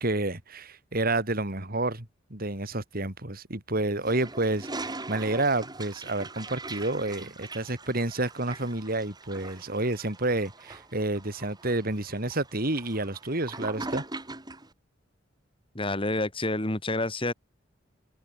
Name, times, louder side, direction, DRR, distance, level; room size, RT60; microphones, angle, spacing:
voice 1, 0.0-14.0, right 2 dB, 50° right, 3.6 m, -29 dB
Toilet flush, 4.0-14.7, right 2 dB, 20° right, 4.1 m, -41 dB
voice 2, 15.7-17.3, left 2 dB, 30° left, 3.2 m, -28 dB
head